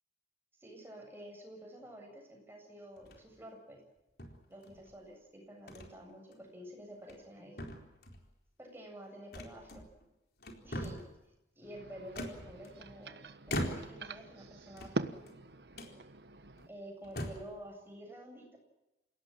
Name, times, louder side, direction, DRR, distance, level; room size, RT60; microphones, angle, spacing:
voice 1, 0.6-3.8 4.5-7.6 8.6-9.8 10.6-11.0 11.6-13.2 13.5-15.1 16.7-18.6, equal, 15° right, 1 dB, 7.9 m, -50 dB
sound 1, 3.0-3.4 4.2-4.9 5.7-5.9 6.3-6.4 6.9-7.3 7.6-8.3 9.3-10.1 10.4-11.2 12.1-13.0 13.5-14.1 14.7-15.4 15.7-16.0 16.6-16.7 17.0-17.5, equal, 60° left, 4.2 m, -41 dB
sound 2, 11.6-16.7, right 2 dB, 65° right, 1.3 m, -44 dB
28.5 x 17.5 x 7.6 m, 0.95 s
head